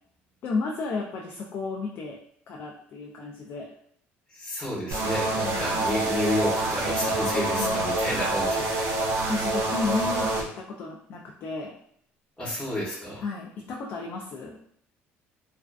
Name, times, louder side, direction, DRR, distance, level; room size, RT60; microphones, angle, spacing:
voice 1, 0.4-2.2 2.5-3.7 5.5-5.9 7.6-8.5 9.1-11.8 13.2-14.6, left 3 dB, 50° left, -1 dB, 0.3 m, -33 dB
voice 2, 4.3-9.1 12.4-13.2, left 1 dB, 20° left, -9 dB, 0.7 m, -31 dB
sound 1, 4.9-10.4, right 2 dB, 65° right, 0.5 m, -26 dB
2.3 x 2.3 x 2.2 m, 0.68 s
cardioid pair, 130°, 5 cm